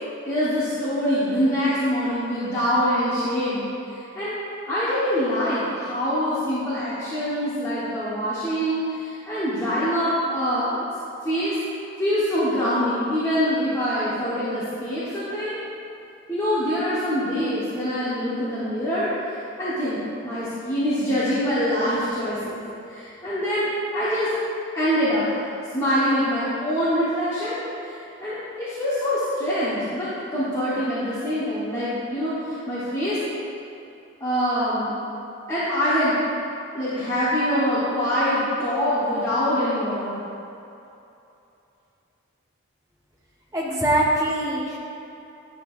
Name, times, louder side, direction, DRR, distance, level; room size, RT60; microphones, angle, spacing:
voice 1, 0.3-3.6 4.1-4.3 4.7-10.9 11.2-11.5 12.0-15.6 16.3-20.0 20.2-22.6 22.9-24.3 24.7-25.3 25.7-33.2 34.2-34.9 35.5-36.1 36.7-40.2, equal, 15° left, -13 dB, 1.1 m, -24 dB
voice 2, 43.5-44.8, right 1 dB, 15° right, -6 dB, 1.1 m, -22 dB
10.0 x 5.4 x 2.5 m, 2.8 s
head